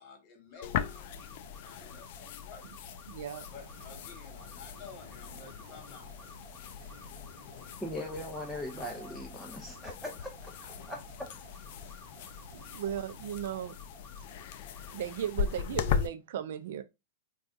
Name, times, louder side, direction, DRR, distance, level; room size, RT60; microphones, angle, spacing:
voice 1, 0.0-2.9 3.5-6.1, left 5 dB, 35° left, 1.5 m, -52 dB
sound 1, 0.5-15.5, left 1 dB, 20° left, 1.8 m, -55 dB
sound 2, 0.6-16.1, left 8 dB, 55° left, 0.4 m, -39 dB
voice 2, 3.1-3.5 12.5-13.8 14.9-16.8, right 10 dB, 65° right, 0.4 m, -36 dB
sound 3, 3.4-13.3, right 5 dB, 40° right, 1.0 m, -57 dB
voice 3, 7.8-11.0, left 1 dB, ahead, 0.6 m, -40 dB
4.6 x 2.3 x 2.6 m
hypercardioid pair, 145°, 0 cm